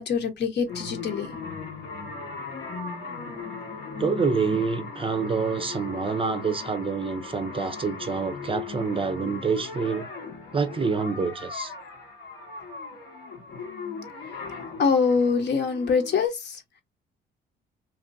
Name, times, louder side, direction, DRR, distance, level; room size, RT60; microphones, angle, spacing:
voice 1, 0.0-1.4 14.8-16.6, left 5 dB, 60° left, 1.0 m, -24 dB
sound 1, 0.7-16.3, left 4 dB, 75° left, 1.2 m, -38 dB
voice 2, 4.0-10.1 10.5-11.7, right 5 dB, 25° right, 0.5 m, -27 dB
2.9 x 2.5 x 2.5 m
cardioid pair, 90°, 20 cm